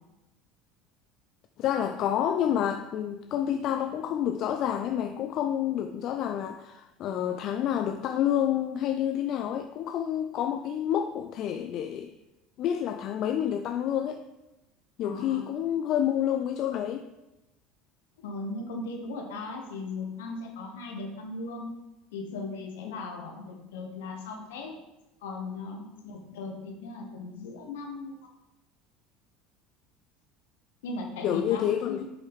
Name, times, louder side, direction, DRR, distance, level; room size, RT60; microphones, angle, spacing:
voice 1, 1.6-12.1 12.6-14.2 15.0-17.1 22.8-23.0 31.2-32.1, left 10 dB, 50° left, 7 dB, 0.4 m, -28 dB
voice 2, 15.0-15.4 18.2-21.7 22.1-24.8 25.2-28.1 30.8-32.1, left 3 dB, 70° left, 2 dB, 1.1 m, -38 dB
6.4 x 5.4 x 3.6 m, 0.97 s
figure-of-eight pair, 70°, 0 cm